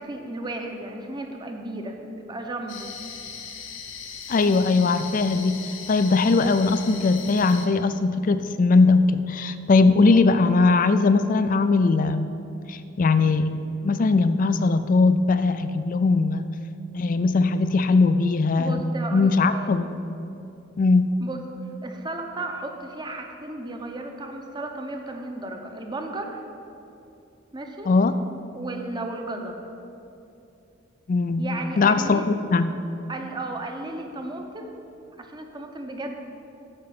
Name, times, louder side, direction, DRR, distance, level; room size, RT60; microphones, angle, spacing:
voice 1, 0.0-2.9 18.6-19.7 21.2-21.4 21.8-26.4 27.5-27.9 28.5-29.6 31.4-32.3 33.1-34.8 35.2-36.2, right 2 dB, 25° right, 3 dB, 0.8 m, -34 dB
sound 1, 2.7-7.7, left 6 dB, 85° left, 1.0 m, -38 dB
voice 2, 4.3-5.6 5.9-12.3 12.7-13.6 13.8-16.5 16.9-18.8 19.1-20.0 20.8-21.1 27.9-28.2 31.1-32.7, left 3 dB, 45° left, 11 dB, 0.4 m, -20 dB
8.8 x 5.2 x 7.6 m, 2.7 s
head